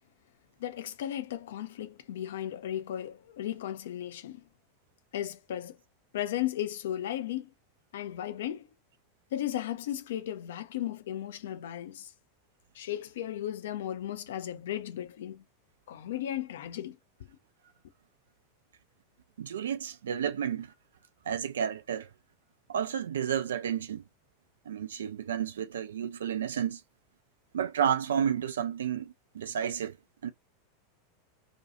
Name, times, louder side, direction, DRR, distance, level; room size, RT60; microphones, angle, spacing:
voice 1, 0.6-4.4 5.1-5.8 6.1-7.5 7.9-8.7 9.3-12.1 12.7-15.4 15.9-16.9, left 12 dB, 60° left, 0.4 m, -35 dB
voice 2, 19.4-20.7 21.3-22.1 22.7-24.0 24.7-26.8 27.5-30.0 30.2-30.3, right 8 dB, 65° right, 0.4 m, -31 dB
2.5 x 2.3 x 2.7 m
figure-of-eight pair, 85°, 0 cm